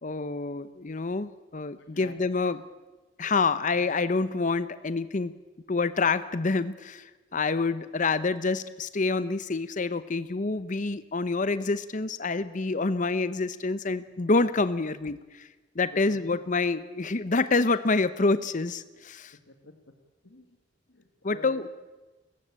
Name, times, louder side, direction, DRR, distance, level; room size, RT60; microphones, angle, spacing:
voice 1, 0.0-2.6 3.2-5.3 5.7-15.5 15.8-19.3 21.2-21.7, left 3 dB, 40° left, 14 dB, 0.8 m, -27 dB
voice 2, 15.8-16.3 19.3-19.9 20.2-20.6 20.9-21.7, left 2 dB, 70° left, 6 dB, 2.0 m, -48 dB
30.0 x 15.0 x 8.7 m, 1.2 s
head